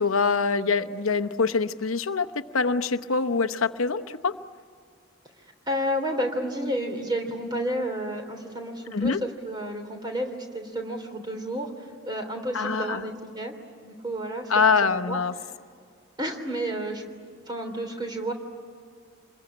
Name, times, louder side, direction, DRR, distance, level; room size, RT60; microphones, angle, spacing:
voice 1, 0.0-2.3 2.5-4.3 8.9-9.2 12.5-13.0 14.5-15.3, left 4 dB, 90° left, 10 dB, 0.9 m, -24 dB
voice 2, 5.7-13.5 13.8-14.5 14.8-15.2 16.2-17.0 17.5-18.3, equal, 20° right, 5 dB, 3.3 m, -31 dB
27.5 x 22.0 x 9.9 m, 2.1 s
head